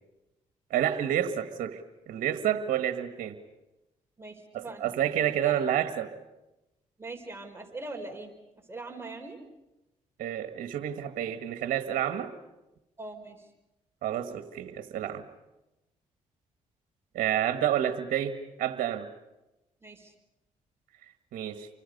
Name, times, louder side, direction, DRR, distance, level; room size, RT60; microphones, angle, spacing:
voice 1, 0.7-1.8 2.1-3.3 4.5-6.1 10.2-12.3 14.0-15.2 17.1-19.1 21.3-21.7, right 10 dB, 80° right, 8 dB, 1.6 m, -29 dB
voice 2, 4.2-4.9 5.4-5.5 7.0-8.3 8.7-9.4 13.0-13.5 19.8-20.1, right 2 dB, 15° right, 3 dB, 4.6 m, -41 dB
29.0 x 24.5 x 5.4 m, 0.98 s
supercardioid pair, 60°, 14 cm